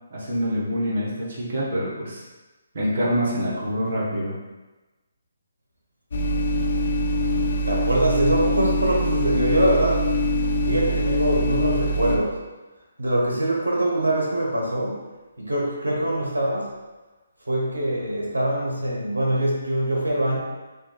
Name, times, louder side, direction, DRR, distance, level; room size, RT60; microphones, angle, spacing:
voice 1, 0.1-2.2 2.7-4.3, equal, 60° right, -6 dB, 1.1 m, -25 dB
sound 1, 6.1-12.2, equal, 60° left, 0.4 m, -24 dB
voice 2, 7.7-10.1 10.6-12.4 13.0-15.0 15.4-16.7 17.4-20.4, right 1 dB, 90° right, -3 dB, 0.9 m, -23 dB
3.5 x 2.3 x 3.2 m, 1.2 s
figure-of-eight pair, 145°, 0 cm